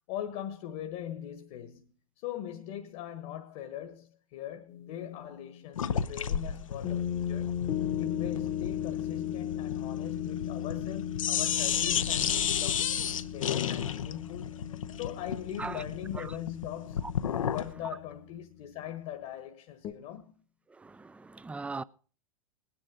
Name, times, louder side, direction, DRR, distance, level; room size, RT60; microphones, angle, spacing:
voice 1, 0.1-7.5 8.0-14.5 15.0-17.0 17.5-20.3, left 11 dB, 50° left, 1.5 m, -41 dB
sound 1, 4.7-5.6 6.8-18.6 19.8-19.9, left 10 dB, 30° left, 1.2 m, -37 dB
sound 2, 5.8-10.9 11.1-17.7, left 8 dB, 75° left, 0.9 m, -32 dB
voice 2, 17.0-17.6 20.7-21.8, right 4 dB, 5° right, 0.5 m, -40 dB
19.5 x 10.0 x 3.9 m
figure-of-eight pair, 95°, 17 cm